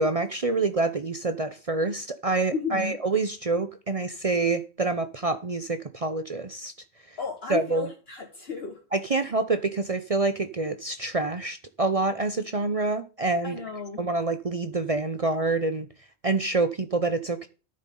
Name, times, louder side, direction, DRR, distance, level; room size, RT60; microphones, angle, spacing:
voice 1, 0.0-6.7 7.1-7.2 7.5-7.9 8.9-13.6 14.0-15.9 16.2-17.5, right 3 dB, 40° right, 0.7 m, -27 dB
voice 2, 2.5-3.0 7.2-8.8 9.1-9.2 13.4-14.0, left 5 dB, 65° left, 1.7 m, -33 dB
13.5 x 7.5 x 3.8 m
omnidirectional pair, 1.1 m